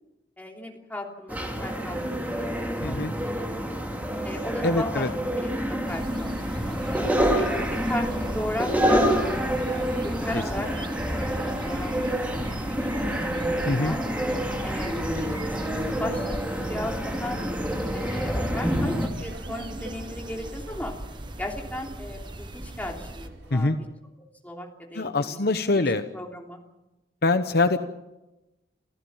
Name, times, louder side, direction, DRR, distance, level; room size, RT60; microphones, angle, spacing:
voice 1, 0.4-3.5 4.2-5.1 5.4-6.8 7.3-7.5 7.9-10.7 11.2-12.2 12.6-13.2 13.7-14.0 14.6-15.1 15.4-17.4 17.9-18.9 19.2-20.9 21.4-23.7 24.4-25.4 25.7-26.6, left 1 dB, 10° left, 0 dB, 3.3 m, -36 dB
sound 1, 1.3-19.1, equal, 10° right, 2.5 m, -27 dB
voice 2, 2.8-3.1 4.6-5.1 10.3-10.7 13.7-14.0 23.5-23.8 24.9-26.0 27.2-27.9, left 2 dB, 55° left, 9 dB, 0.9 m, -24 dB
sound 2, 5.9-23.3, right 1 dB, 25° right, 1.2 m, -39 dB
Laughter, 17.7-23.5, right 1 dB, 80° right, 6.5 m, -45 dB
28.0 x 15.0 x 7.3 m, 0.99 s
head